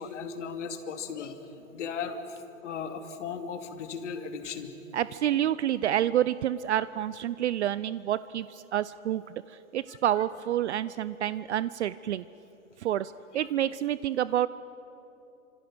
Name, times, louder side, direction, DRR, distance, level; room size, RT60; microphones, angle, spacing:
voice 1, 0.0-1.4 1.7-2.4 2.6-4.7 9.9-10.0, left 6 dB, 55° left, 6 dB, 2.7 m, -36 dB
voice 2, 4.9-12.2 12.8-14.5, right 11 dB, 55° right, 16 dB, 0.6 m, -28 dB
28.5 x 26.0 x 6.3 m, 2.9 s
hypercardioid pair, 140°, 41 cm